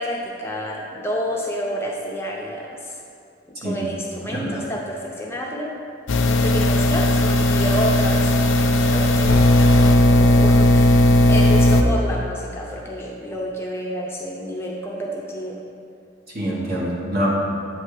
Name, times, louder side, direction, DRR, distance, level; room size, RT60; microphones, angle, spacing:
voice 1, 0.0-3.0 3.6-5.7 6.3-15.6, equal, 15° left, -3 dB, 0.5 m, -29 dB
voice 2, 4.2-4.6 16.3-17.3, equal, 50° right, -5 dB, 1.4 m, -25 dB
sound 1, 6.1-11.8, left 1 dB, 80° left, 0.5 m, -16 dB
8.2 x 3.2 x 4.8 m, 2.4 s
head